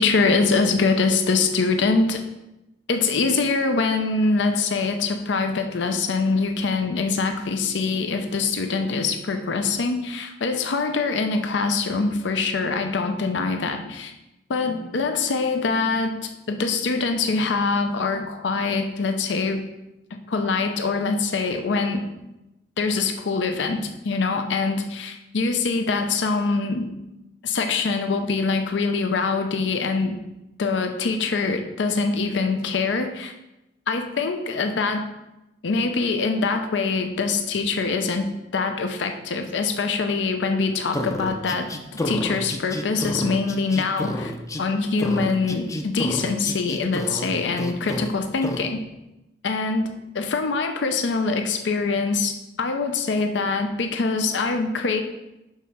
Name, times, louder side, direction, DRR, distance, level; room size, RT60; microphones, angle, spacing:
voice 1, 0.0-2.2 2.9-14.1 14.5-19.6 20.3-22.1 22.8-26.9 27.4-30.2 30.6-33.3 33.9-35.1 35.6-44.3 44.6-48.8 49.4-55.0, left 4 dB, 75° left, 6 dB, 0.5 m, -24 dB
sound 1, 40.9-44.6 45.0-47.3 47.6-48.1 48.4-48.6, left 1 dB, 20° left, 0.4 m, -30 dB
6.4 x 3.6 x 5.5 m, 0.95 s
head